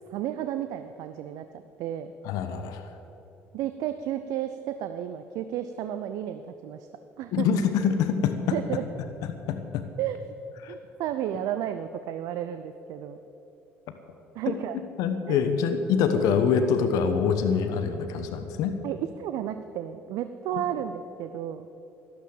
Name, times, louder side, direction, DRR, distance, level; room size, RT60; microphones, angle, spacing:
voice 1, 0.1-2.1 3.5-6.9 7.2-7.5 8.5-8.8 10.0-10.2 10.7-13.2 14.3-14.8 15.3-15.5 16.1-16.4 18.8-21.7, right 11 dB, 65° right, 10 dB, 0.6 m, -32 dB
voice 2, 2.2-2.8 7.3-8.6 9.5-9.8 10.6-10.7 15.0-18.8 20.5-20.6, left 6 dB, 65° left, 8 dB, 1.1 m, -25 dB
12.5 x 12.0 x 7.8 m, 2.9 s
hypercardioid pair, 55°, 7 cm